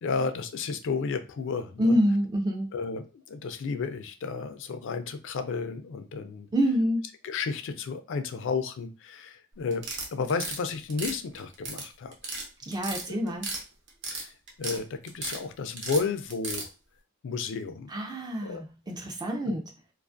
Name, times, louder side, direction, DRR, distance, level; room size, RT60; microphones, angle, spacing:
voice 1, 0.0-2.0 2.7-6.5 7.2-12.3 13.1-13.2 14.1-14.3 14.6-16.7 17.2-17.9 18.4-18.7 19.4-19.6, left 4 dB, 60° left, 9 dB, 0.4 m, -32 dB
voice 2, 1.8-2.7 6.5-7.0 12.6-13.5 17.9-19.7, equal, 20° right, 2 dB, 0.3 m, -27 dB
sound 1, 9.7-10.6 10.9-11.8 12.1-12.4 12.7-13.6 13.9-14.8 15.1-15.4 15.8-16.7, right 3 dB, 55° right, 0.8 m, -34 dB
2.4 x 2.3 x 2.5 m, 0.32 s
head